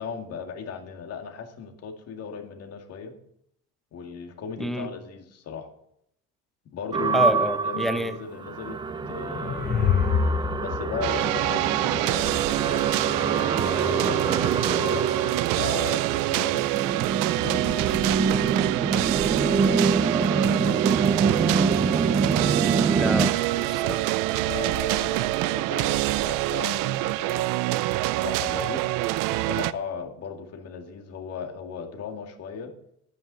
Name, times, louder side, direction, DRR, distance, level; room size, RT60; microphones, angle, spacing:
voice 1, 0.0-3.1 3.9-5.7 6.7-8.8 9.1-10.0 10.6-14.2 14.7-16.7 17.4-18.3 19.3-20.7 24.4-27.5 28.2-29.0 29.3-32.7, left 6 dB, 50° left, 5 dB, 2.1 m, -37 dB
voice 2, 4.6-4.9 7.1-8.1 22.9-24.1, equal, ahead, 9 dB, 0.8 m, -28 dB
sound 1, 6.9-23.3, right 4 dB, 15° right, 0.4 m, -26 dB
sound 2, 8.9-12.4, left 7 dB, 30° left, 0.6 m, -27 dB
sound 3, 11.0-29.7, right 18 dB, 75° right, 0.6 m, -25 dB
11.0 x 9.4 x 6.9 m, 0.74 s
cardioid pair, 130°, 33 cm